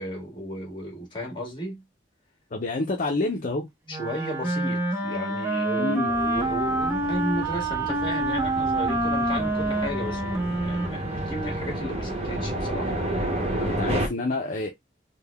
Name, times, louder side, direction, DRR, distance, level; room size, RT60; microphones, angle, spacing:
voice 1, 0.0-1.8 3.9-12.9, equal, 25° left, 1.6 m, -34 dB
voice 2, 2.5-3.7 5.8-6.1 13.6-14.7, left 2 dB, 45° left, 0.6 m, -28 dB
Wind instrument woodwind instrument, 3.9-12.0, right 2 dB, 15° right, 0.7 m, -27 dB
sound 1, 6.1-14.1, right 1 dB, 35° right, 1.1 m, -31 dB
3.8 x 2.2 x 3.4 m
head